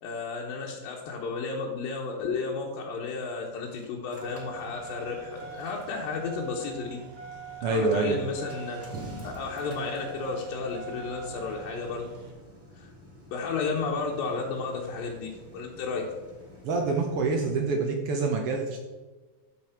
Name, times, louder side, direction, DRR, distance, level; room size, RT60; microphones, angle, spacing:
voice 1, 0.0-7.0 7.6-12.1 12.8-12.9 13.3-16.0, left 4 dB, 80° left, -2 dB, 2.8 m, -33 dB
Engine starting, 2.5-17.6, right 5 dB, 15° right, 0.4 m, -46 dB
sound 1, 4.2-12.3, right 3 dB, 55° right, 2.7 m, -51 dB
voice 2, 7.6-8.2 8.9-9.1 16.6-18.8, right 3 dB, 90° right, 2 dB, 1.2 m, -26 dB
12.5 x 5.6 x 4.4 m, 1.3 s
omnidirectional pair, 4.0 m